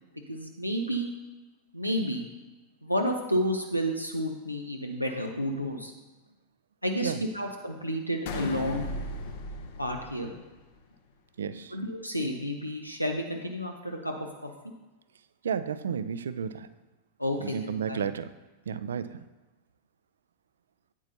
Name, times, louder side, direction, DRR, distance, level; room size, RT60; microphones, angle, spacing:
voice 1, 0.3-1.1 1.7-2.2 2.8-5.9 6.8-8.9 9.8-10.3 11.7-14.1 14.4-14.5 17.2-18.0, equal, 90° left, 2 dB, 0.6 m, -31 dB
sound 1, 8.3-10.8, left 2 dB, 55° left, 0.8 m, -37 dB
voice 2, 11.4-11.8 15.4-16.7 17.4-18.3 18.7-19.2, right 7 dB, 65° right, 14 dB, 0.3 m, -32 dB
8.7 x 8.2 x 2.7 m, 1.2 s
figure-of-eight pair, 90°, 0 cm